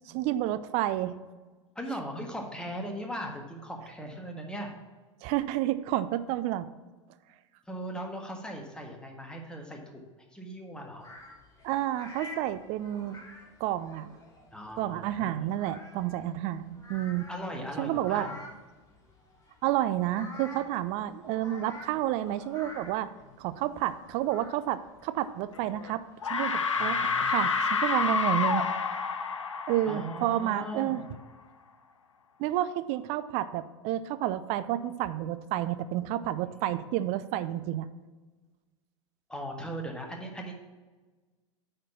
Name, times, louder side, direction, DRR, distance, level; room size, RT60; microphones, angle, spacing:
voice 1, 0.1-1.2 5.2-6.6 11.6-13.2 13.6-14.1 14.8-17.3 17.8-18.3 19.6-23.1 23.4-26.0 26.3-27.0 27.3-28.7 29.7-31.0 32.4-37.9, right 13 dB, 45° right, 13 dB, 0.5 m, -30 dB
voice 2, 1.7-4.7 7.7-10.0 10.3-11.1 14.5-15.5 17.3-18.4 26.7-27.4 29.8-31.1 39.3-40.5, equal, 5° left, 2 dB, 1.6 m, -39 dB
sound 1, 11.0-26.5, left 2 dB, 20° left, 2.0 m, -49 dB
sound 2, 25.6-25.9 26.2-30.8, left 5 dB, 80° left, 0.7 m, -29 dB
8.9 x 4.4 x 5.7 m, 1.3 s
figure-of-eight pair, 85°, 16 cm